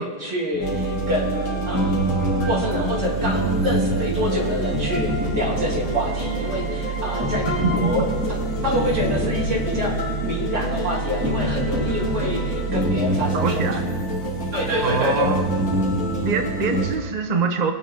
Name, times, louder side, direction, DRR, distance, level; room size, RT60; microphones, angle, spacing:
voice 1, 0.0-8.1 8.4-9.9 10.2-13.7 14.5-15.3, equal, 35° right, -4 dB, 3.0 m, -27 dB
sound 1, 0.5-16.8, equal, 10° right, 2.0 m, -27 dB
sound 2, 0.6-17.0, right 3 dB, 90° left, 3.1 m, -28 dB
voice 2, 13.3-13.9 14.8-15.5 16.2-17.7, right 5 dB, 60° right, 5 dB, 0.4 m, -24 dB
22.5 x 8.2 x 3.6 m, 1.5 s
omnidirectional pair, 2.2 m